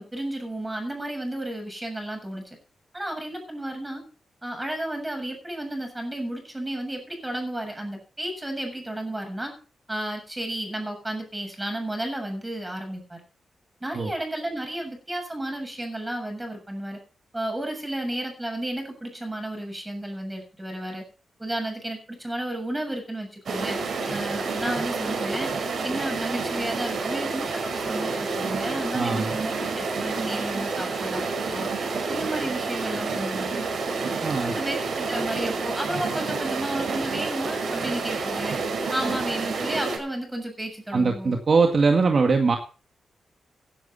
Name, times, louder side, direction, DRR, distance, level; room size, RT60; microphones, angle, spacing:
voice 1, 0.0-2.6 2.9-4.0 4.4-9.5 9.9-13.2 13.8-17.0 17.3-21.0 21.4-23.8 24.1-25.5 25.8-31.7 32.1-33.6 34.4-38.6 38.9-41.4, right 1 dB, 10° right, 3 dB, 7.2 m, -32 dB
sound 1, 23.5-40.0, right 4 dB, 65° right, 5.2 m, -29 dB
voice 2, 28.9-29.4 34.2-34.5 40.9-42.6, right 4 dB, 45° right, 4 dB, 1.9 m, -21 dB
16.5 x 11.5 x 4.2 m, 0.37 s
wide cardioid pair, 130°, 0 cm